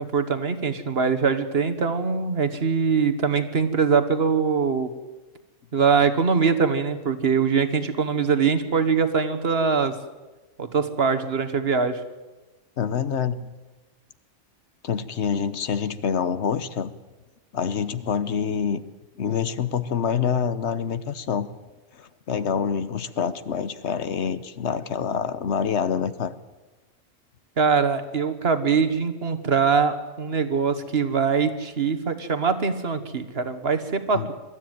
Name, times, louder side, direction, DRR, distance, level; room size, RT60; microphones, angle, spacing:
voice 1, 0.0-4.9 5.7-9.9 10.6-12.0 27.6-34.3, right 5 dB, 55° right, 10 dB, 1.6 m, -23 dB
voice 2, 12.8-13.5 14.8-16.9 17.5-18.8 19.2-21.5 21.9-26.3 34.1-34.3, left 7 dB, 70° left, 13 dB, 1.2 m, -26 dB
22.0 x 13.0 x 9.2 m, 1.2 s
omnidirectional pair, 1.2 m